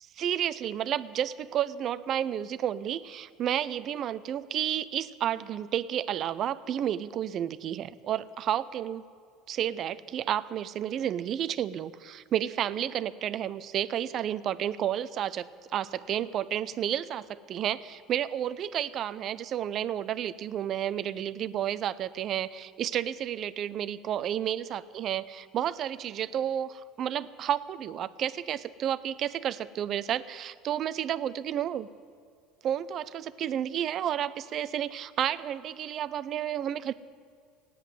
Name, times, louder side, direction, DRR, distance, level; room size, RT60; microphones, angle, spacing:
voice 1, 0.2-9.0 9.5-31.9 32.6-36.9, right 10 dB, 45° right, 16 dB, 0.5 m, -31 dB
14.5 x 10.0 x 9.2 m, 2.2 s
supercardioid pair, 110°, 0 cm